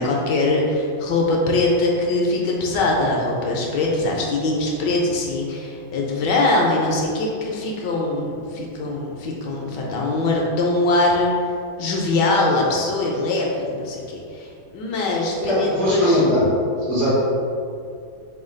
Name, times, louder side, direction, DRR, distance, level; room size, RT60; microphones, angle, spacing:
voice 1, 0.0-11.3 11.8-14.5 14.7-16.2, left 2 dB, 75° left, -2 dB, 1.1 m, -22 dB
voice 2, 15.4-16.5 16.8-17.1, left 1 dB, 85° right, -12 dB, 2.2 m, -19 dB
5.0 x 2.2 x 3.7 m, 2.4 s
omnidirectional pair, 2.3 m